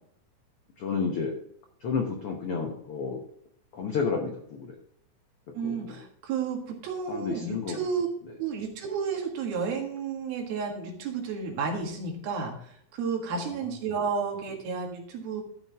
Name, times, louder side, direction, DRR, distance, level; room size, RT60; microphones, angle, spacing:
voice 1, 0.8-1.3 1.8-3.2 3.7-4.8 5.6-6.0 7.1-7.8 13.3-13.6, left 5 dB, 80° left, 2 dB, 1.3 m, -31 dB
voice 2, 5.5-8.1 8.4-15.4, right 5 dB, 85° right, 1 dB, 3.6 m, -32 dB
13.5 x 5.7 x 3.5 m, 0.66 s
omnidirectional pair, 4.2 m